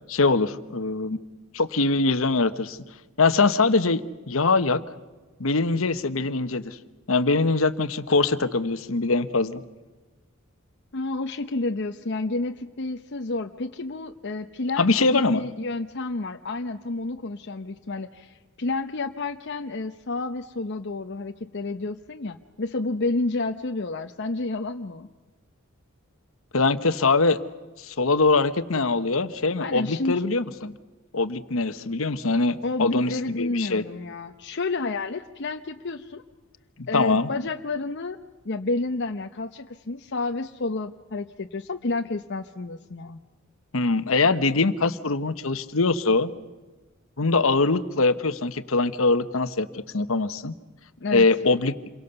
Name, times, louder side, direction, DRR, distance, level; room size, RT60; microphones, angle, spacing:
voice 1, 0.1-1.2 1.5-2.8 3.2-4.8 5.4-6.8 7.1-9.6 14.8-15.5 26.5-27.4 27.8-30.7 31.1-33.8 36.8-37.3 43.7-46.3 47.2-50.5 51.1-51.7, left 3 dB, 70° left, 11 dB, 1.1 m, -23 dB
voice 2, 10.9-25.1 29.6-30.2 32.6-36.2 36.9-38.2 38.4-43.2 51.0-51.3, left 3 dB, 55° left, 5 dB, 0.8 m, -30 dB
28.0 x 23.0 x 6.9 m, 1.2 s
head